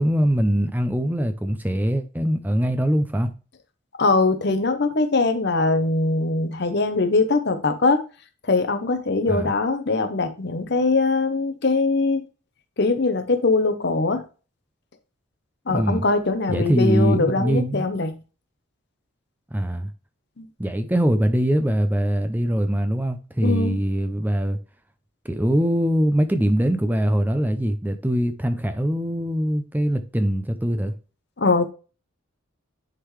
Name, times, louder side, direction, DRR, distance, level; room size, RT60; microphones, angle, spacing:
voice 1, 0.0-3.3 9.3-9.5 15.7-16.0 16.5-17.9 19.5-19.9 20.6-24.6 25.2-30.9, equal, 10° right, 0.5 m, -22 dB
voice 2, 4.0-8.0 8.4-12.2 12.8-14.2 15.7-18.2 20.4-20.5 23.4-23.8 31.4-31.7, left 3 dB, 55° left, 0.8 m, -22 dB
9.9 x 3.8 x 3.2 m
head